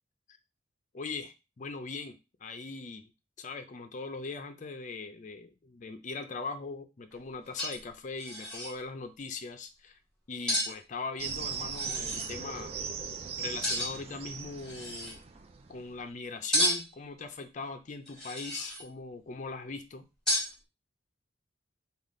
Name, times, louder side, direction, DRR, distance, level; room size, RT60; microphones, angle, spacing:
voice 1, 0.9-3.1 3.4-10.0 10.3-12.7 13.4-15.2 15.7-20.0, left 4 dB, 40° left, 9 dB, 0.4 m, -40 dB
sound 1, 7.1-7.2 7.6-8.7 10.5-10.7 11.7-12.3 13.6-14.1 14.6-15.2 16.5-17.0 18.1-18.9 20.3-20.5, equal, 5° left, 1.6 m, -31 dB
sound 2, 11.2-16.0, right 6 dB, 30° right, 0.3 m, -39 dB
3.5 x 2.3 x 3.6 m, 0.27 s
head